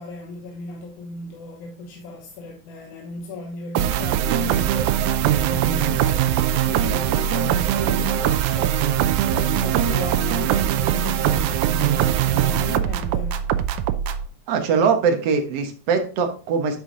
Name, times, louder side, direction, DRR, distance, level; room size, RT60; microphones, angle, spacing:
voice 1, 0.0-8.9 9.3-13.4, left 3 dB, 85° left, 2.4 m, -36 dB
sound 1, 3.8-14.3, right 10 dB, 90° right, 2.1 m, -21 dB
voice 2, 14.5-16.8, right 5 dB, 60° right, 2.1 m, -21 dB
10.5 x 4.8 x 3.8 m
omnidirectional pair, 3.4 m